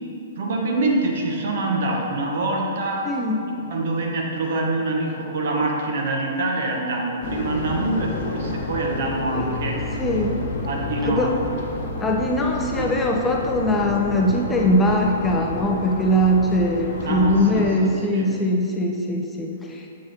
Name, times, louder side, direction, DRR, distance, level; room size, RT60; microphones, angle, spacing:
voice 1, 0.3-3.1 3.5-9.8 10.7-11.4 11.7-11.8 12.8-12.9 17.0-18.3, right 2 dB, 55° right, -1 dB, 1.2 m, -25 dB
voice 2, 3.0-3.4 9.3-9.6 10.0-10.4 11.0-11.3 12.0-19.9, equal, 10° left, 0 dB, 0.6 m, -21 dB
sound 1, 7.2-17.7, left 3 dB, 45° left, 0.9 m, -31 dB
7.5 x 7.2 x 2.9 m, 2.6 s
figure-of-eight pair, 110°, 0 cm